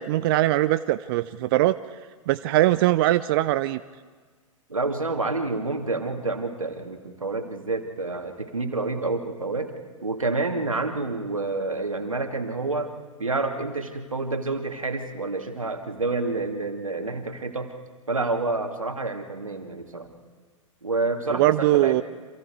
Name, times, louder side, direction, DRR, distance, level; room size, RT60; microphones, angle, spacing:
voice 1, 0.0-1.8 2.3-3.8 21.4-22.0, right 15 dB, 45° right, 13 dB, 0.6 m, -21 dB
voice 2, 4.7-9.8 10.0-12.9 13.2-17.7 18.1-20.1 20.8-22.0, right 3 dB, 85° right, 5 dB, 2.4 m, -28 dB
29.0 x 26.5 x 4.8 m, 1.5 s
figure-of-eight pair, 105°, 17 cm